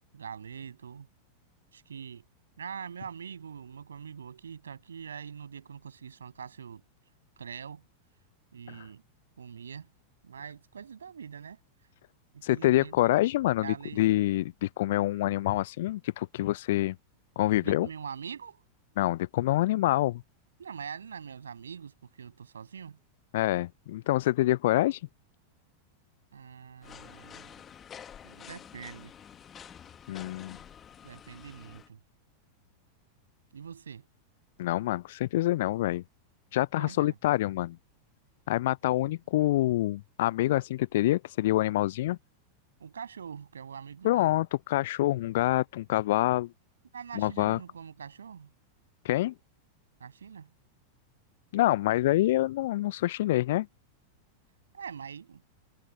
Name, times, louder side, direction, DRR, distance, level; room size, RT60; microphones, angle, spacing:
voice 1, 0.1-1.1 1.7-2.2 2.6-6.8 7.4-7.8 8.5-9.0 9.4-9.9 10.2-11.6 12.3-13.1 13.6-14.1 17.6-18.6 20.6-23.0 26.3-27.6 28.2-29.1 31.0-32.0 33.5-34.1 36.8-37.2 42.8-44.4 46.9-48.5 50.0-50.5 54.7-55.4, right 7 dB, 70° right, 7.8 m, -43 dB
voice 2, 12.4-17.0 17.4-17.9 19.0-20.2 23.3-25.1 30.1-30.6 34.6-36.0 36.5-37.8 38.5-42.2 44.0-46.5 47.1-47.6 49.0-49.3 51.5-53.7, left 15 dB, 55° left, 0.5 m, -26 dB
sound 1, 26.8-31.9, left 8 dB, 25° left, 2.0 m, -49 dB
figure-of-eight pair, 90°, 0 cm